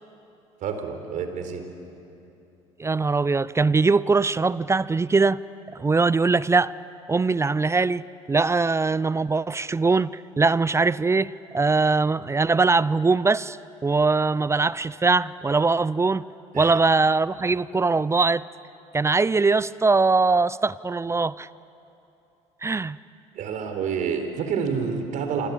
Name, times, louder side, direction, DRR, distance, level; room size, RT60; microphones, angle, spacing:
voice 1, 0.6-1.7 16.5-16.8 23.4-25.5, right 6 dB, 55° right, 7 dB, 4.2 m, -28 dB
voice 2, 2.8-5.4 5.7-6.7 7.1-13.6 13.8-16.2 16.5-18.4 18.9-21.5 22.6-23.0, right 3 dB, 15° right, 19 dB, 0.6 m, -21 dB
28.0 x 25.0 x 8.6 m, 2.8 s
hypercardioid pair, 70°, 16 cm